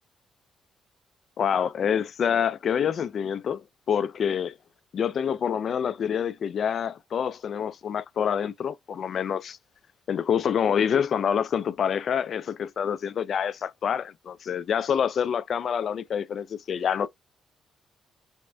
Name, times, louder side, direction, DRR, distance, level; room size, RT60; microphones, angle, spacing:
voice 1, 1.4-4.6 4.9-9.6 10.1-17.1, left 8 dB, 55° left, 0.3 m, -27 dB
3.5 x 2.1 x 3.1 m
cardioid pair, 90°, 0 cm